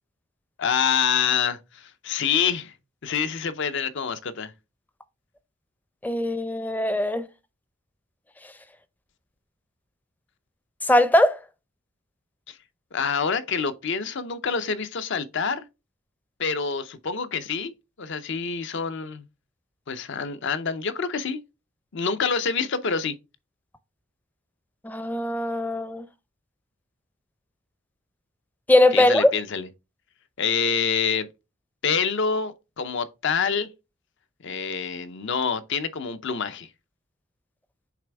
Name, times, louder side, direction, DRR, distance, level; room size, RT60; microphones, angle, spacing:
voice 1, 0.6-2.7 3.0-4.5 12.5-12.6 12.9-15.6 16.4-17.7 18.0-19.2 19.9-21.4 21.9-23.1 28.9-29.7 30.4-31.3 31.8-33.7 34.4-36.7, left 6 dB, 60° left, 0.6 m, -26 dB
voice 2, 6.0-7.2 10.9-11.4 24.8-26.0 28.7-29.3, left 1 dB, 10° left, 0.5 m, -20 dB
8.4 x 3.4 x 3.4 m
head